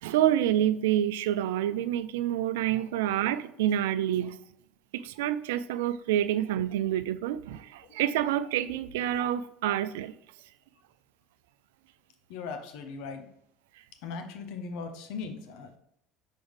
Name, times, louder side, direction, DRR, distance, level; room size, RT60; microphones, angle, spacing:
voice 1, 0.0-4.4 4.9-10.1, right 11 dB, 70° right, 14 dB, 0.3 m, -28 dB
voice 2, 12.3-13.3 14.0-15.8, left 5 dB, 60° left, 6 dB, 0.9 m, -39 dB
6.3 x 4.8 x 3.4 m, 0.74 s
figure-of-eight pair, 65°, 0 cm